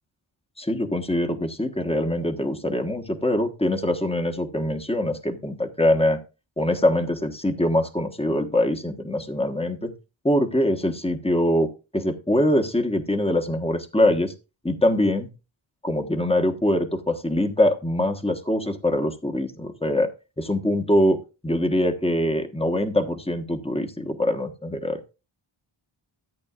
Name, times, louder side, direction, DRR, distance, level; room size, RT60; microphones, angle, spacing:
voice 1, 0.6-6.2 6.6-9.9 10.2-14.3 14.6-15.3 15.8-20.1 20.4-25.0, left 1 dB, 10° left, 6 dB, 1.3 m, -23 dB
14.0 x 8.6 x 2.5 m, 0.29 s
wide cardioid pair, 40°, 49 cm